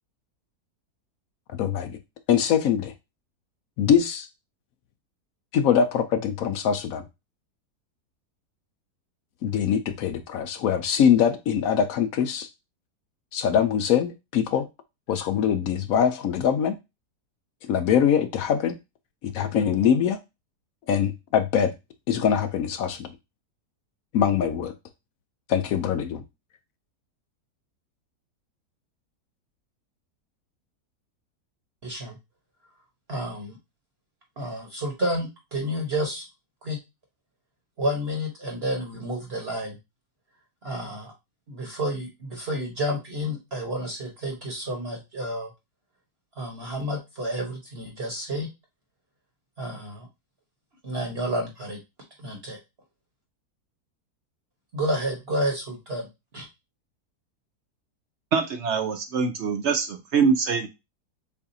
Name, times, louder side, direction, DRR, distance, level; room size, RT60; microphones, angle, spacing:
voice 1, 1.5-2.0 2.3-2.9 3.8-4.3 5.5-7.1 9.4-12.5 13.3-14.7 15.1-16.7 17.6-18.8 19.2-20.2 20.9-21.7 22.1-23.1 24.1-24.7 25.5-26.2, left 8 dB, 70° left, 0.9 m, -23 dB
voice 2, 31.8-32.2 33.1-33.6 34.4-36.2 36.6-36.8 37.8-39.8 40.6-41.1 41.5-45.5 46.4-48.5 49.6-50.1 50.8-51.8 52.2-52.6 54.7-56.1 56.3-56.4, equal, 40° right, 1.3 m, -30 dB
voice 3, 58.3-60.7, right 5 dB, 65° right, 0.7 m, -24 dB
6.9 x 2.5 x 2.7 m
omnidirectional pair, 1.7 m